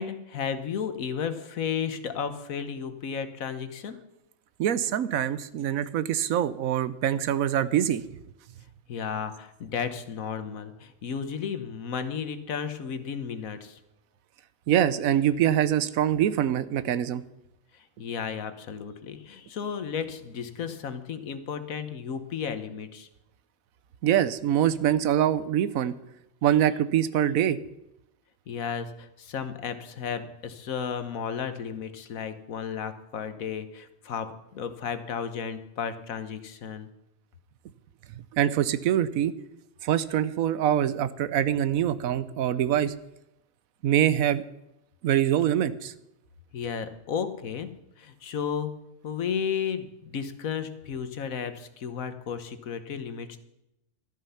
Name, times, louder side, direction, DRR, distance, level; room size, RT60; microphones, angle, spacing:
voice 1, 0.0-4.0 8.9-13.8 17.7-23.1 28.5-36.9 46.5-53.4, left 7 dB, 85° left, 10 dB, 1.5 m, -33 dB
voice 2, 4.6-8.0 14.7-17.2 24.0-25.9 26.4-27.6 38.3-39.3 39.8-42.9 43.8-44.4 45.0-45.9, right 10 dB, 90° right, 15 dB, 1.2 m, -24 dB
13.0 x 11.5 x 5.7 m, 0.88 s
omnidirectional pair, 1.4 m